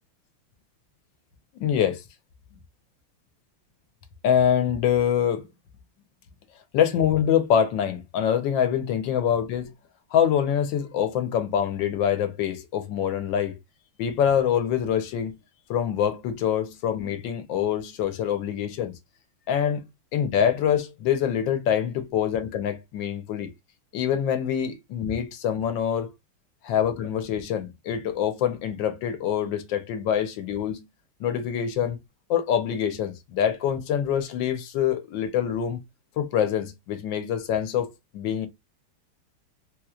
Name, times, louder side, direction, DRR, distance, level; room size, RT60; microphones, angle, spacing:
voice 1, 1.5-2.0 4.2-5.5 6.7-9.7 10.1-13.6 14.0-15.4 15.7-18.9 19.5-19.8 20.1-23.5 23.9-26.1 26.6-30.9 31.2-32.0 32.3-35.8 36.2-37.9 38.1-38.5, left 9 dB, 70° left, 1.3 m, -25 dB
3.3 x 3.1 x 2.3 m
omnidirectional pair, 2.2 m